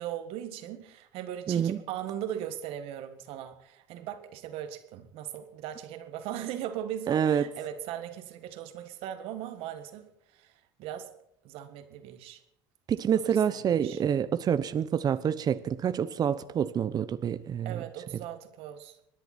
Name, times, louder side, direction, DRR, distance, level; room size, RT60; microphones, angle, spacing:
voice 1, 0.0-10.5 10.8-11.1 11.4-12.4 13.1-14.0 17.7-19.0, right 11 dB, 70° right, 1.7 m, -39 dB
voice 2, 1.5-1.8 7.1-7.5 12.9-17.8, right 8 dB, 40° right, 0.8 m, -27 dB
26.0 x 10.5 x 4.4 m
supercardioid pair, 85°, 10 cm